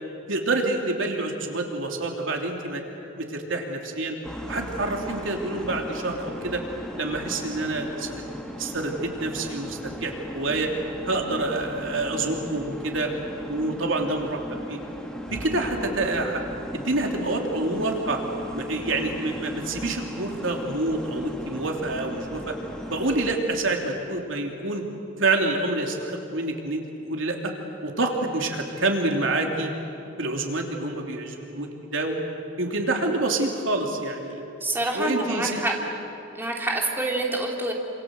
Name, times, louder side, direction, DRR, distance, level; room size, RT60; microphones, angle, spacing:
voice 1, 0.3-2.8 3.2-4.1 4.4-6.6 7.0-8.2 8.6-10.7 11.0-13.1 13.5-14.4 14.7-14.8 15.3-16.4 16.7-18.2 18.5-22.5 22.9-24.8 25.2-27.5 27.8-29.7 30.2-32.2 32.6-34.4 34.9-35.6, right 2 dB, 85° right, 2 dB, 3.2 m, -27 dB
sound 1, 4.2-23.4, equal, 5° left, 2.5 m, -37 dB
voice 2, 34.6-35.8 36.4-37.7, right 2 dB, 10° right, -1 dB, 3.0 m, -26 dB
28.0 x 27.0 x 7.8 m, 2.8 s
head